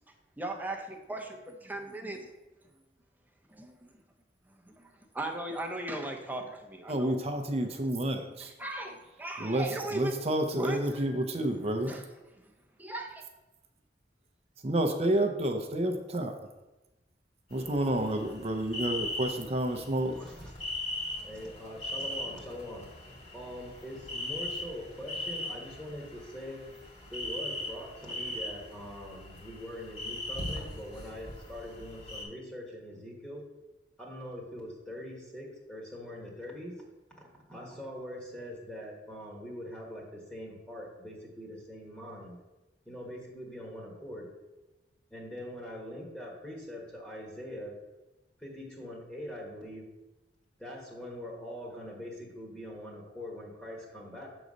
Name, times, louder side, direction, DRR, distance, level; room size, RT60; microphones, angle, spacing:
voice 1, 0.4-2.3 3.5-3.9 4.5-7.2 8.4-10.2 10.5-11.2 11.9-12.1 12.3-12.5 12.8-13.2, right 1 dB, 10° right, 2 dB, 0.9 m, -38 dB
voice 2, 6.9-8.5 9.4-9.7 9.9-11.9 14.6-16.3 17.5-20.2, right 1 dB, 35° right, 5 dB, 0.6 m, -29 dB
sound 1, 17.5-32.2, left 1 dB, 35° left, 2.2 m, -39 dB
voice 3, 20.2-20.5 21.2-22.9 23.3-26.7 27.1-33.5 34.0-36.8 37.2-42.4 42.9-44.3 45.1-47.7 48.4-49.9 50.6-54.3, equal, 5° left, -2 dB, 1.3 m, -43 dB
6.4 x 4.0 x 6.3 m, 1.0 s
head